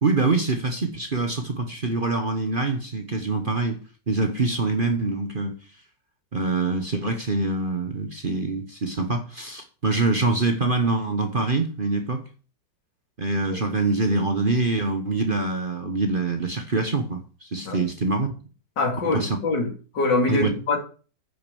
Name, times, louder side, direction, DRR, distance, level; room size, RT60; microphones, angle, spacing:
voice 1, 0.0-3.8 4.1-5.6 6.3-12.2 13.2-18.3 19.1-19.4 20.3-20.5, right 3 dB, 35° right, 1.1 m, -25 dB
voice 2, 18.8-20.8, left 3 dB, 75° left, 3.1 m, -24 dB
9.7 x 6.6 x 7.0 m
omnidirectional pair, 2.0 m